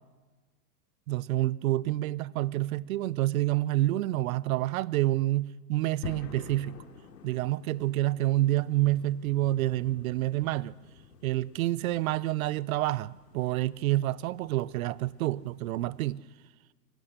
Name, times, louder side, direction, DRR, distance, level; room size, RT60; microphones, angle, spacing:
voice 1, 1.1-6.8 7.2-10.7 11.2-16.2, right 16 dB, 60° right, 0.6 m, -28 dB
sound 1, 6.0-16.2, left 7 dB, 85° left, 2.9 m, -49 dB
25.0 x 17.5 x 6.6 m
hypercardioid pair, 130°, 48 cm